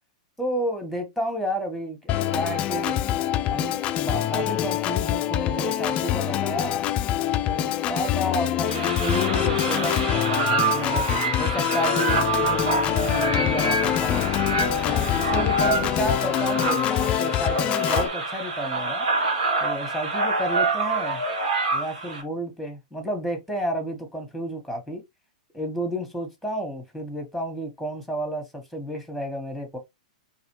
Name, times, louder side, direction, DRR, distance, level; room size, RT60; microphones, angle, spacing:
voice 1, 0.4-3.0 3.5-6.8 7.4-11.1 11.4-14.2 14.9-19.1 19.6-21.2 21.7-25.0 25.5-29.8, equal, ahead, 1.7 m, -31 dB
Organ, 2.1-18.1, left 11 dB, 30° left, 0.4 m, -25 dB
sound 1, 8.7-22.2, right 3 dB, 75° right, 1.9 m, -27 dB
4.0 x 3.1 x 3.2 m
hypercardioid pair, 120°, 4 cm